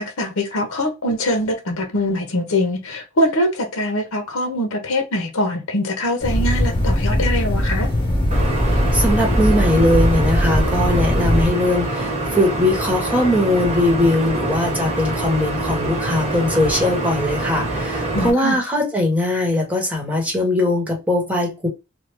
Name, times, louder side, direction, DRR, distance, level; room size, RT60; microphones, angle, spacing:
voice 1, 0.0-7.9 18.1-18.6, left 1 dB, 70° left, 0.9 m, -23 dB
sound 1, 6.2-11.5, equal, 25° left, 1.2 m, -20 dB
sound 2, 8.3-18.3, right 2 dB, 35° right, 1.1 m, -25 dB
voice 2, 8.6-21.7, left 1 dB, 5° right, 1.2 m, -20 dB
3.3 x 2.2 x 3.2 m
head